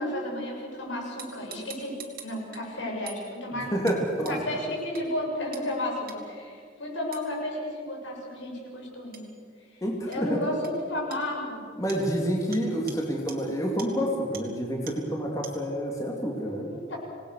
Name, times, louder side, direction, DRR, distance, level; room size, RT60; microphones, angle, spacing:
voice 1, 0.0-2.0 2.2-3.7 4.3-9.2 9.6-11.7 16.7-17.0, left 1 dB, 85° left, -1 dB, 6.9 m, -33 dB
sound 1, 1.2-2.6 3.1-3.2 3.9-4.0 4.2-4.4 4.9-5.0 5.5-5.7 6.1-6.2 7.1-7.3 9.1-9.3 10.1-10.2 10.6-10.7 11.1-11.2 11.9-12.0 12.5-12.6 12.9-13.0 13.3-13.4 13.8-13.9 14.3-14.4 14.9-15.0 15.4-15.5, right 8 dB, 50° right, 2.7 m, -43 dB
voice 2, 3.7-4.4 9.8-10.5 11.8-16.7, equal, 15° left, -1 dB, 2.7 m, -28 dB
27.0 x 19.5 x 6.6 m, 2.2 s
head